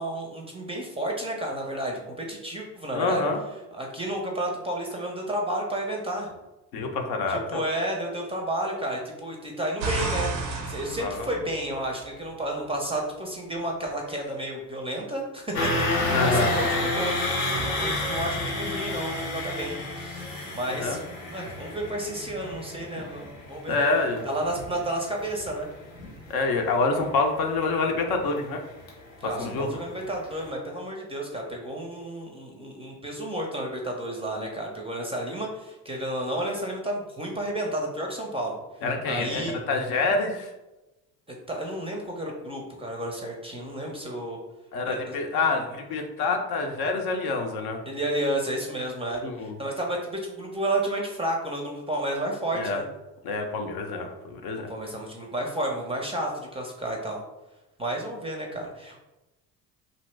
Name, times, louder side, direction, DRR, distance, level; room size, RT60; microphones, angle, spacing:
voice 1, 0.0-3.2 3.7-6.3 7.3-10.3 10.7-15.5 15.9-17.2 17.6-21.0 21.3-23.8 24.2-25.7 29.2-38.6 39.1-39.6 41.5-44.4 44.9-45.1 47.9-52.9 54.7-57.2 57.8-59.0, right 1 dB, 10° right, 0 dB, 0.6 m, -31 dB
voice 2, 2.9-3.4 6.7-7.6 11.0-11.3 16.1-16.5 20.7-21.0 23.0-23.1 23.7-24.2 26.3-28.6 29.4-29.8 38.8-40.5 44.7-47.8 49.2-49.6 52.5-52.8 53.2-54.7, left 3 dB, 50° left, 3 dB, 0.6 m, -27 dB
sound 1, 9.8-12.2 17.5-19.6, right 3 dB, 90° right, 0.6 m, -33 dB
sound 2, 15.5-29.6 29.9-30.1 30.5-30.6, left 1 dB, 80° left, 0.9 m, -30 dB
2.8 x 2.6 x 3.2 m, 1.0 s
hypercardioid pair, 60°, 49 cm